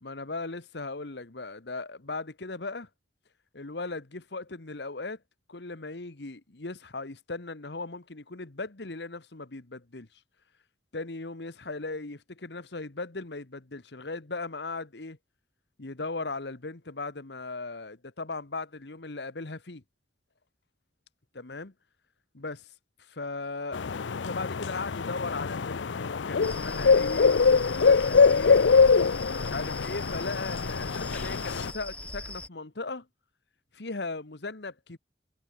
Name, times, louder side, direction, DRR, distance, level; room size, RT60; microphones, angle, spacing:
voice 1, 0.0-2.9 3.5-5.2 5.5-10.1 10.9-15.2 15.8-19.8 21.4-21.7 22.3-22.7 23.0-23.8 24.2-28.7 29.3-33.1 33.7-35.0, left 3 dB, 65° left, 1.3 m, -38 dB
sound 1, 23.7-31.7, left 5 dB, 85° left, 0.6 m, -23 dB
sound 2, 26.4-32.5, left 1 dB, 5° left, 0.8 m, -40 dB
head